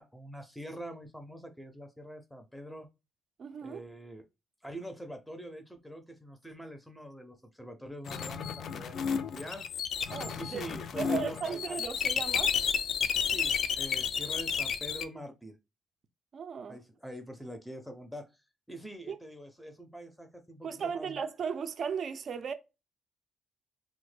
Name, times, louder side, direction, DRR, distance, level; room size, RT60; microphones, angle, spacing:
voice 1, 0.0-2.9 3.6-4.2 4.6-9.6 10.4-11.8 13.3-15.6 16.7-18.4 18.7-21.2, equal, ahead, 0.5 m, -44 dB
voice 2, 3.4-3.8 10.1-10.7 11.0-12.6 16.3-16.8 19.1-19.2 20.6-22.5, right 6 dB, 55° right, 0.4 m, -36 dB
sound 1, 8.1-15.0, left 7 dB, 65° left, 0.4 m, -32 dB
3.3 x 2.1 x 3.2 m
cardioid pair, 90°, 0 cm